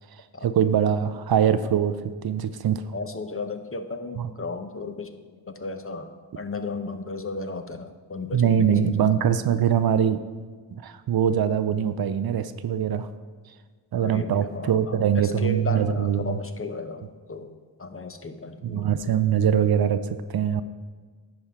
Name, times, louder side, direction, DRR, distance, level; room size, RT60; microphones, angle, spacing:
voice 1, 0.1-2.9 4.2-4.3 8.3-10.2 10.8-13.1 13.9-16.4 18.6-20.6, right 8 dB, 55° right, 12 dB, 0.5 m, -23 dB
voice 2, 2.9-9.1 14.0-17.5 17.8-19.2, left 3 dB, 30° left, 8 dB, 0.7 m, -35 dB
10.5 x 4.3 x 4.9 m, 1.5 s
supercardioid pair, 40°, 45 cm